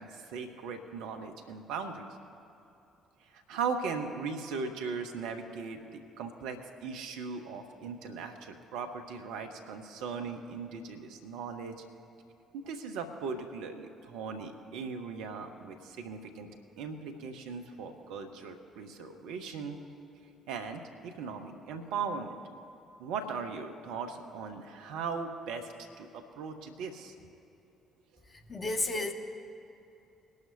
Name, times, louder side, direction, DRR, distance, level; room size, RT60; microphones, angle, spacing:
voice 1, 0.0-2.1 3.3-11.8 12.5-16.5 16.8-19.8 20.5-22.4 23.0-25.7 26.0-27.1, right 5 dB, 70° right, 6 dB, 1.0 m, -38 dB
voice 2, 28.5-29.1, left 2 dB, 35° left, 5 dB, 1.4 m, -31 dB
21.5 x 12.0 x 2.8 m, 2.8 s
figure-of-eight pair, 45°, 0 cm